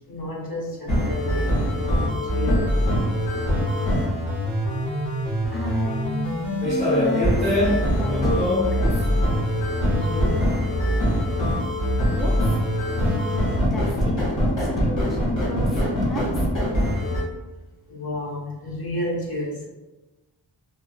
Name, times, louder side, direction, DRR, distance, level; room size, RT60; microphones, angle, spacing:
voice 1, 0.0-2.8 9.9-10.5 17.9-19.7, left 1 dB, 55° left, -3 dB, 0.9 m, -31 dB
sound 1, 0.9-17.2, equal, 75° left, 1.2 m, -23 dB
voice 2, 5.5-6.4 6.8-9.1 12.1-12.6 12.9-16.5, left 1 dB, ahead, -3 dB, 0.4 m, -33 dB
sound 2, 6.3-12.7, left 1 dB, 15° left, 1.4 m, -26 dB
3.0 x 2.5 x 2.3 m, 1.1 s
wide cardioid pair, 90°, 45 cm